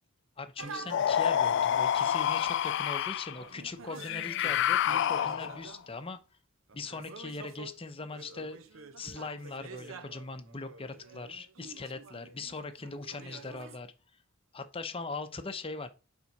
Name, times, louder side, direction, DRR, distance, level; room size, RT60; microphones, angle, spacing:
voice 1, 0.4-6.2 6.7-8.6 9.0-13.9 14.5-15.9, left 3 dB, 30° left, 0.7 m, -40 dB
sound 1, 0.6-2.4 3.3-5.9 6.7-13.8, right 4 dB, 75° right, 0.7 m, -48 dB
sound 2, 0.9-3.4 4.0-5.7, left 10 dB, 60° left, 0.3 m, -28 dB
5.7 x 4.5 x 5.1 m
head